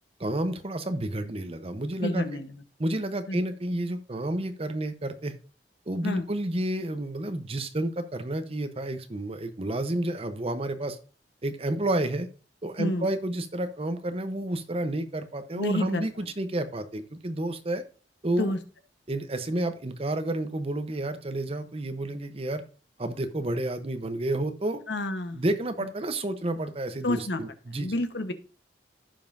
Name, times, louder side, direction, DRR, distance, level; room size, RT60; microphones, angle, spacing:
voice 1, 0.2-2.2 2.8-5.3 5.9-11.0 11.4-12.3 12.6-17.8 18.2-18.5 19.1-22.6 23.0-24.8 25.3-27.9, right 1 dB, 35° right, 9 dB, 0.8 m, -30 dB
voice 2, 2.0-2.5 3.3-3.4 6.0-6.2 12.8-13.1 15.5-16.1 18.4-18.6 24.9-25.4 27.0-27.4 27.7-28.3, left 1 dB, 80° left, 9 dB, 1.1 m, -29 dB
15.0 x 5.4 x 2.6 m, 0.37 s
head